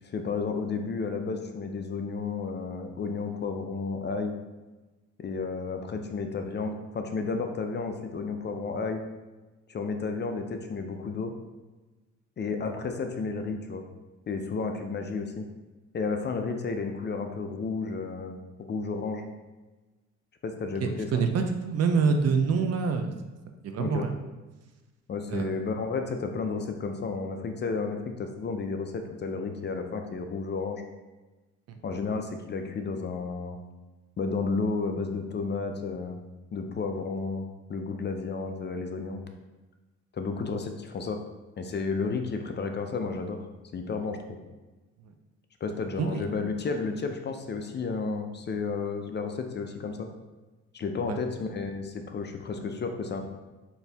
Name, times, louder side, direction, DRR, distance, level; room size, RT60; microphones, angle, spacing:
voice 1, 0.0-4.4 5.2-9.0 9.7-11.3 12.4-13.8 14.3-15.5 15.9-18.4 18.7-19.3 20.4-21.2 23.8-24.1 25.1-30.8 31.8-33.6 34.2-36.2 36.5-37.4 37.7-39.2 40.1-41.2 41.6-43.5 43.7-44.4 45.6-50.1 50.7-53.2, left 4 dB, 35° left, 6 dB, 0.4 m, -32 dB
voice 2, 20.8-23.1 23.6-24.1 25.3-25.6 31.7-31.8 46.0-46.3 51.1-51.2, right 5 dB, 55° right, 6 dB, 0.5 m, -26 dB
4.3 x 2.7 x 3.4 m, 1.2 s
cardioid pair, 90°, 30 cm